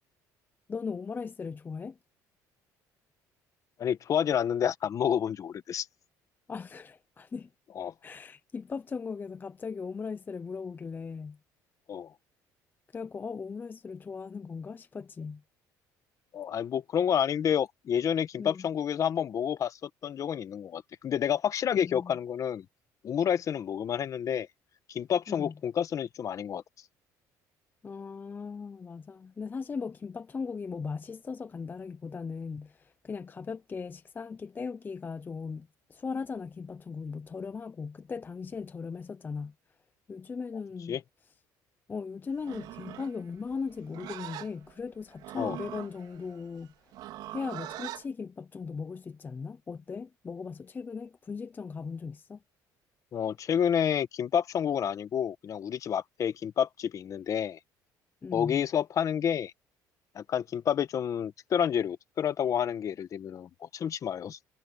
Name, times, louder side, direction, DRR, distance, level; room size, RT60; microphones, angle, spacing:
voice 1, 0.7-2.0 6.5-7.5 8.0-11.4 12.9-15.4 18.4-18.7 21.7-22.1 25.3-25.5 27.8-39.5 40.1-41.0 41.9-46.7 47.3-52.4 58.2-58.6, left 5 dB, 25° left, 0.6 m, -38 dB
voice 2, 3.8-5.9 7.7-7.9 11.9-12.1 16.3-22.6 23.0-24.5 24.9-26.6 40.9-41.0 45.3-45.6 53.1-57.6 58.3-59.5 60.1-64.4, left 8 dB, 45° left, 1.3 m, -29 dB
Livestock farm animals working animals, 42.4-48.1, right 14 dB, 75° right, 4.2 m, -43 dB
cardioid pair, 105°, 8 cm